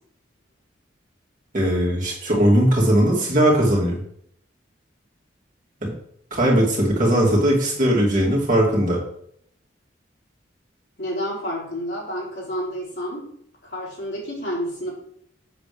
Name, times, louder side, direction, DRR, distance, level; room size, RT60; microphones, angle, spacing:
voice 1, 1.5-4.0 5.8-5.9 6.3-9.0, right 1 dB, 40° right, -4 dB, 2.8 m, -19 dB
voice 2, 11.0-13.3 13.6-14.9, equal, 60° left, -5 dB, 3.7 m, -29 dB
7.9 x 4.1 x 6.9 m, 0.69 s
head